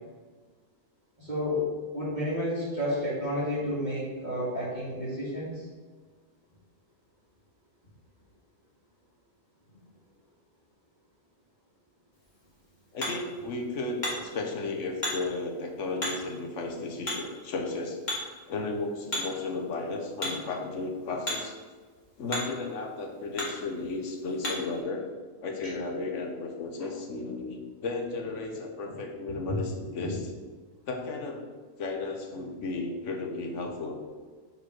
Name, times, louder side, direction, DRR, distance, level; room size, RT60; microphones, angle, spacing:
voice 1, 1.2-1.6 1.9-5.7 25.6-25.7 29.5-29.6 30.0-30.1, equal, 35° right, -11 dB, 2.3 m, -31 dB
Hammer, 12.1-24.8, left 1 dB, 35° left, 1.9 m, -39 dB
voice 2, 12.9-18.0 18.5-21.5 22.2-25.0 25.4-30.3 30.9-31.5 31.8-34.0, left 3 dB, 65° left, 3 dB, 1.3 m, -34 dB
5.0 x 4.9 x 6.0 m, 1.4 s
omnidirectional pair, 1.4 m